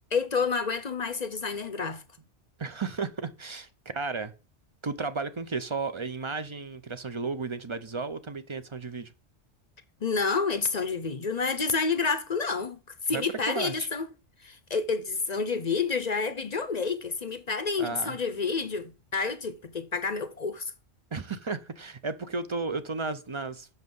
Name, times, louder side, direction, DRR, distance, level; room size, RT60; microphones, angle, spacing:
voice 1, 0.1-2.0 10.0-12.8 13.1-14.1 14.4-20.7, left 4 dB, 40° left, 0.7 m, -29 dB
voice 2, 2.6-4.3 4.8-9.1 13.1-13.9 17.8-18.2 21.1-23.7, right 4 dB, 35° right, 0.6 m, -34 dB
8.2 x 6.4 x 5.4 m
omnidirectional pair, 1.2 m